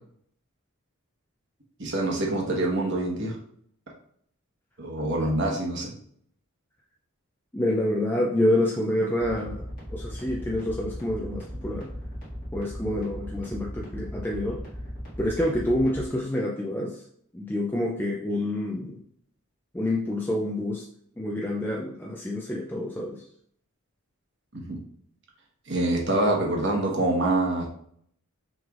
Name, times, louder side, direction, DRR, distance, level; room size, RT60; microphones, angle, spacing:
voice 1, 1.8-3.4 4.8-5.9 24.5-24.8 25.7-27.7, right 2 dB, 55° right, -1 dB, 1.1 m, -25 dB
voice 2, 7.5-9.6 9.9-11.9 12.5-14.6 15.2-17.0 17.3-19.0 19.7-20.9 21.2-23.2, left 1 dB, 10° left, -1 dB, 0.3 m, -27 dB
sound 1, 9.2-16.1, equal, 40° left, 1.8 m, -37 dB
6.1 x 3.3 x 2.4 m, 0.64 s
head